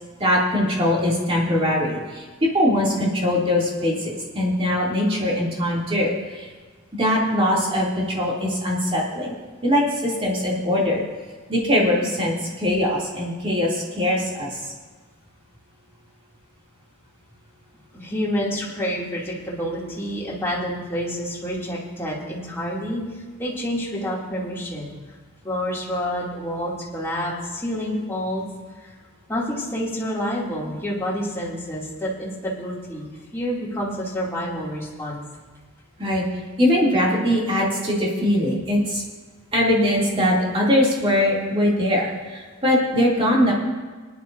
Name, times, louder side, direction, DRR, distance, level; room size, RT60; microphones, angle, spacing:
voice 1, 0.2-6.5 6.9-9.3 9.6-11.0 11.5-14.6 36.0-36.2 36.6-39.0 39.5-43.5, left 1 dB, 25° right, -4 dB, 2.8 m, -21 dB
voice 2, 17.9-24.9 25.4-28.4 28.8-28.9 29.3-35.2, equal, 10° left, -6 dB, 2.7 m, -28 dB
21.0 x 10.5 x 2.7 m, 1.4 s
head